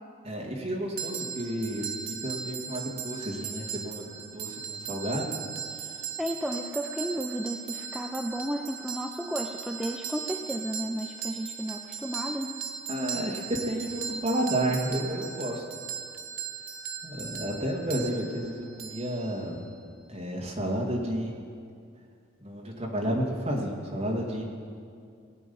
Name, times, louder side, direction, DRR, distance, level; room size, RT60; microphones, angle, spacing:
voice 1, 0.2-1.9 2.2-5.3 12.9-15.6 17.0-19.6 20.1-21.3 22.4-24.4, right 1 dB, 30° right, -2 dB, 2.1 m, -31 dB
sound 1, 1.0-19.7, right 7 dB, 85° right, 1.0 m, -38 dB
voice 2, 6.2-12.6, equal, ahead, 2 dB, 0.4 m, -33 dB
19.0 x 8.6 x 5.5 m, 2.3 s
head